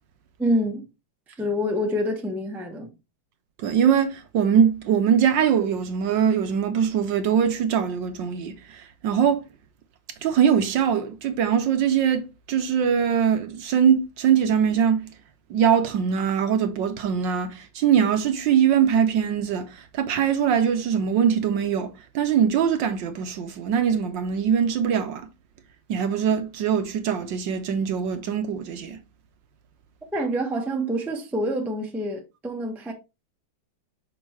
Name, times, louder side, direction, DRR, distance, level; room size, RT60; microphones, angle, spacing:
voice 1, 0.4-0.8 1.4-2.9 30.1-32.9, equal, ahead, 0.6 m, -26 dB
voice 2, 3.6-9.4 10.2-15.1 15.5-25.3 25.9-29.0, right 8 dB, 70° right, 1.2 m, -22 dB
6.4 x 5.3 x 3.0 m
omnidirectional pair, 2.3 m